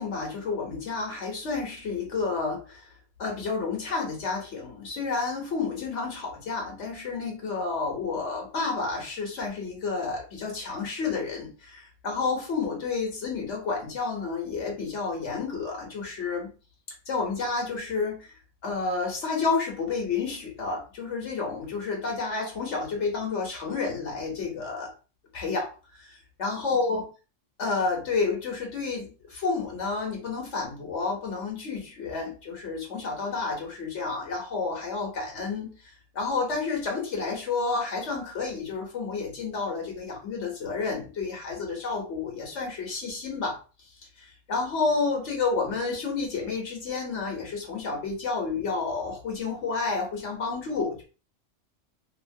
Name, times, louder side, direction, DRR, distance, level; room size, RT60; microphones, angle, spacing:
voice 1, 0.0-2.8 3.2-16.5 17.1-18.3 18.6-24.9 25.3-25.7 25.9-27.0 27.6-35.7 36.1-43.6 44.2-51.0, left 4 dB, 75° left, 0 dB, 1.2 m, -30 dB
2.9 x 2.7 x 2.7 m, 0.34 s
omnidirectional pair, 1.2 m